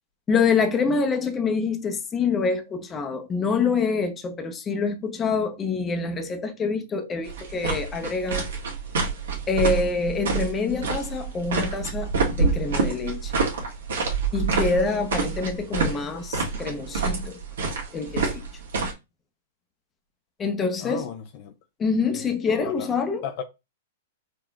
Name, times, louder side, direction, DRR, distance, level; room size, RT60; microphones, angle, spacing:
voice 1, 0.3-8.5 9.5-13.3 14.3-17.4 17.9-18.4 20.4-21.1 21.8-23.2, left 4 dB, 20° left, 0.8 m, -26 dB
sound 1, 7.3-18.9, right 4 dB, 75° right, 1.5 m, -27 dB
voice 2, 20.8-21.5 22.1-22.9 23.2-23.4, left 8 dB, 50° left, 0.5 m, -36 dB
4.9 x 2.9 x 2.4 m
hypercardioid pair, 130°, 0 cm